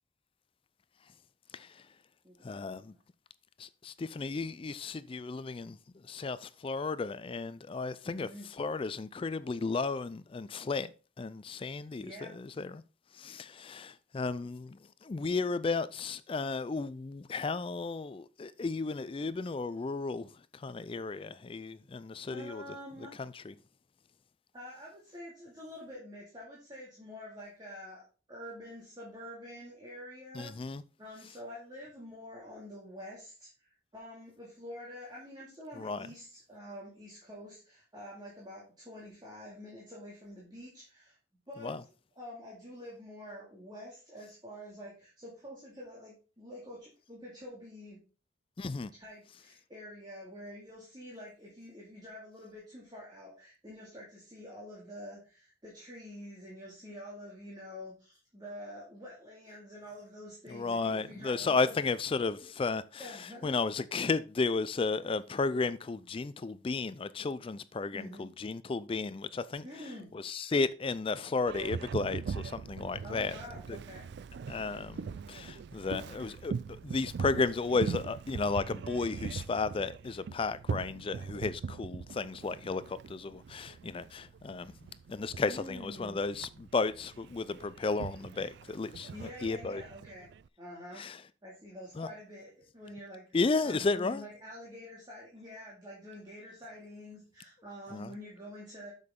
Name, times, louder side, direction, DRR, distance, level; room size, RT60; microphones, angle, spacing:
voice 1, 1.5-1.8 2.4-2.9 3.6-5.8 6.1-10.9 11.2-12.8 13.1-22.6 23.2-23.5 30.3-30.8 35.8-36.1 41.6-41.8 48.6-48.9 60.5-69.7 70.1-73.4 73.7-73.8 74.5-84.7 85.1-89.8 91.0-91.2 92.0-92.1 93.3-94.2 97.9-98.1, left 4 dB, 30° left, 0.4 m, -34 dB
voice 2, 2.2-3.0 8.0-8.5 12.0-12.4 22.3-23.1 24.5-41.2 41.5-41.7 42.2-48.0 48.9-61.9 63.0-63.5 67.9-68.3 69.6-70.1 73.0-74.1 85.4-86.2 89.1-90.3 90.6-91.0 91.4-93.2 93.6-98.9, equal, 20° right, 2.4 m, -47 dB
Boat Water vehicle, 71.5-90.5, right 5 dB, 60° right, 0.3 m, -41 dB
8.1 x 6.7 x 3.7 m
head